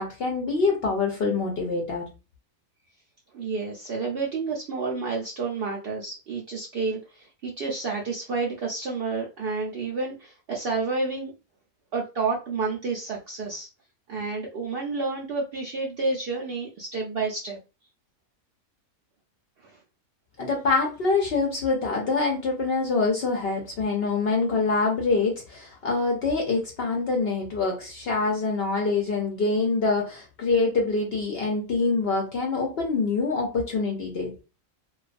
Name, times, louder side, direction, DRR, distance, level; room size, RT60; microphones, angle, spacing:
voice 1, 0.0-2.1 20.4-34.3, left 3 dB, 65° left, 0.6 m, -25 dB
voice 2, 3.3-11.3 11.9-13.7 14.1-17.6 19.6-19.8, right 4 dB, 70° right, 0.6 m, -30 dB
2.3 x 2.3 x 2.4 m
omnidirectional pair, 1.5 m